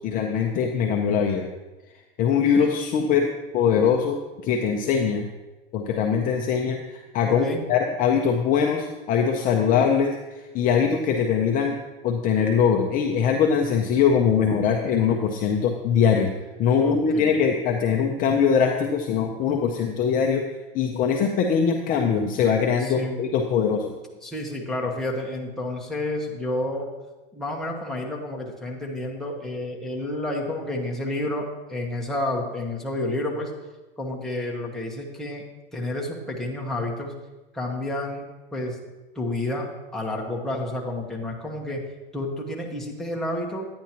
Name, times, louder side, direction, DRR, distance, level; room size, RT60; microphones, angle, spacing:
voice 1, 0.0-1.5 2.2-5.2 5.7-11.8 12.0-16.3 16.6-20.4 20.7-23.9, left 7 dB, 30° left, 2 dB, 0.5 m, -22 dB
voice 2, 7.2-7.6 16.8-17.3 22.8-23.2 24.2-26.9 27.3-33.5 34.0-35.4 35.7-37.1 37.5-38.2 38.5-38.8 39.1-41.8 42.1-43.7, left 1 dB, ahead, -3 dB, 1.1 m, -30 dB
10.5 x 9.3 x 2.9 m, 1.2 s
supercardioid pair, 145°, 29 cm